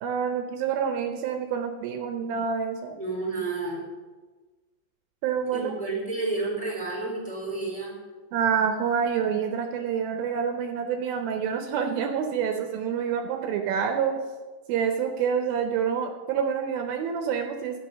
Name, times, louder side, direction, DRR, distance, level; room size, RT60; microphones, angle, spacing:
voice 1, 0.0-3.0 5.2-5.7 8.3-14.2 14.7-17.8, right 7 dB, 80° right, 4 dB, 2.5 m, -27 dB
voice 2, 3.0-3.9 5.5-8.0, right 3 dB, ahead, -7 dB, 3.5 m, -30 dB
11.5 x 5.6 x 6.5 m, 1.3 s
omnidirectional pair, 4.4 m